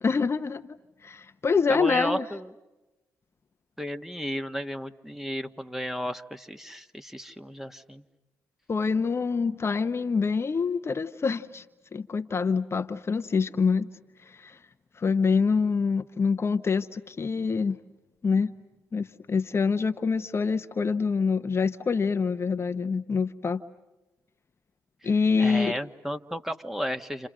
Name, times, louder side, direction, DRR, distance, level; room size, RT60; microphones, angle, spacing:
voice 1, 0.0-2.2 8.7-11.6 11.9-13.9 14.2-14.6 15.0-17.8 18.2-18.5 18.9-23.6 25.0-25.8, left 5 dB, 40° left, 9 dB, 0.9 m, -26 dB
voice 2, 1.7-2.5 3.8-8.0 25.0-25.1 25.4-27.3, equal, 5° right, 8 dB, 1.6 m, -33 dB
29.5 x 29.0 x 6.5 m, 1.0 s
hypercardioid pair, 50°, 7 cm